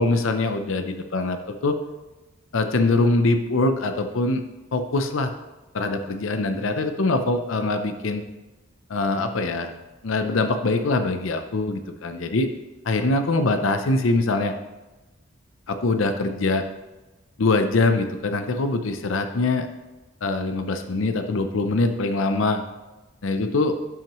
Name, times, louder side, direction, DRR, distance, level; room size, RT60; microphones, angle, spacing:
voice 1, 0.0-1.4 1.6-1.8 2.5-4.4 4.7-5.3 5.7-8.2 8.9-9.7 10.0-12.5 12.8-14.5 15.7-16.6 17.4-19.7 20.2-22.6 23.2-23.7, left 2 dB, 70° left, 7 dB, 0.6 m, -23 dB
12.0 x 6.0 x 3.0 m, 1.1 s
head